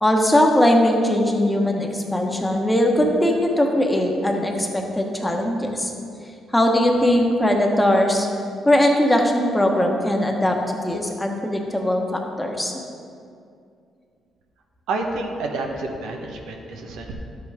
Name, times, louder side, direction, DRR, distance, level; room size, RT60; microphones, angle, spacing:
voice 1, 0.0-5.9 6.5-8.3 8.6-12.7, left 1 dB, 10° left, 1 dB, 1.2 m, -20 dB
voice 2, 14.9-17.1, right 2 dB, 90° right, 1 dB, 1.0 m, -29 dB
11.0 x 8.0 x 3.6 m, 2.4 s
cardioid pair, 90°, 0 cm